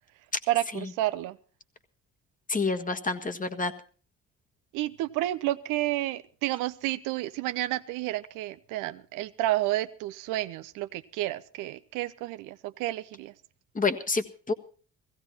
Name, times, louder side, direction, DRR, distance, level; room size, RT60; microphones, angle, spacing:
voice 1, 0.5-1.4 4.7-13.3, right 16 dB, 85° right, 13 dB, 0.7 m, -30 dB
voice 2, 2.5-3.7 13.7-14.5, left 4 dB, 25° left, 8 dB, 1.6 m, -28 dB
16.0 x 16.0 x 4.4 m, 0.39 s
supercardioid pair, 65°, 31 cm